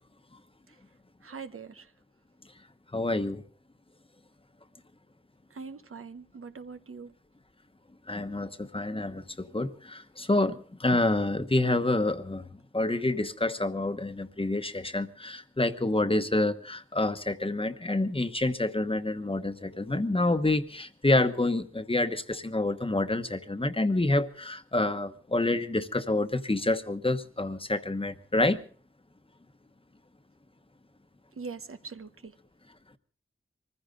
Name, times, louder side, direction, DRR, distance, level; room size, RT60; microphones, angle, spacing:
voice 1, 1.2-1.9 5.5-7.1 31.3-32.3, right 5 dB, 90° right, 1.0 m, -42 dB
voice 2, 2.9-3.4 8.1-12.5 12.7-28.6, left 2 dB, 25° left, 1.0 m, -28 dB
24.0 x 15.0 x 3.8 m
wide cardioid pair, 70°, 21 cm